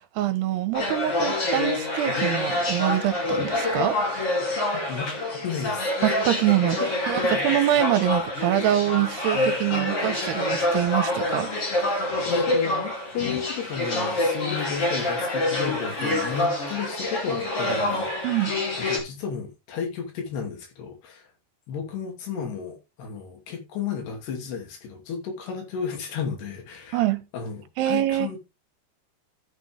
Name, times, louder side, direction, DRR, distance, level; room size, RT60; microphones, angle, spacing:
voice 1, 0.2-4.0 6.0-6.8 7.1-11.5 18.2-18.5 26.9-27.2 27.8-28.3, right 13 dB, 80° right, 2.9 m, -24 dB
sound 1, 0.7-19.0, left 1 dB, 35° left, 3.5 m, -26 dB
voice 2, 4.7-5.1 5.4-5.9 6.8-6.9 7.2-7.4 12.3-18.1 18.8-21.3 21.7-27.0 27.3-28.4, left 7 dB, 80° left, 4.7 m, -33 dB
14.5 x 6.0 x 3.4 m
omnidirectional pair, 4.7 m